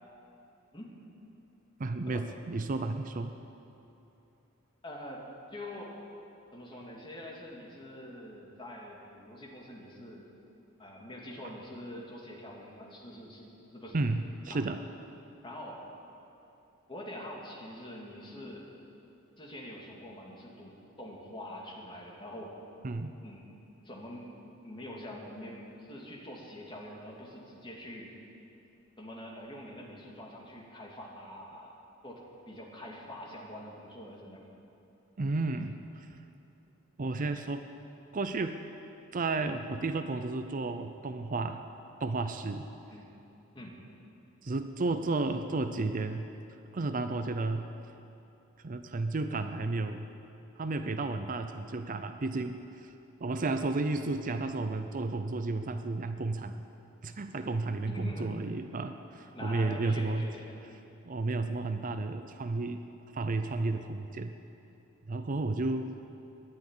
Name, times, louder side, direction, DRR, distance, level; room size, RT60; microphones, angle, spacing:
voice 1, 1.8-3.3 13.9-14.8 22.8-23.1 35.2-36.1 37.0-37.6 38.1-38.6 39.1-41.6 42.0-42.7 44.4-46.3 46.7-47.7 48.6-50.1 50.6-52.9 53.2-56.6 57.0-60.3 61.0-62.8 63.1-64.3 65.1-65.9, right 3 dB, 40° right, 8 dB, 0.6 m, -32 dB
voice 2, 4.8-5.2 5.5-6.0 6.5-10.3 10.8-14.0 14.5-14.6 15.4-15.8 16.9-18.7 19.4-22.5 23.2-23.5 23.8-24.3 24.6-28.1 29.0-31.7 32.0-34.5 42.9-43.1 43.5-43.8 57.9-58.3 59.3-60.5, left 1 dB, 25° left, -2 dB, 2.4 m, -45 dB
13.0 x 10.5 x 9.9 m, 2.8 s
head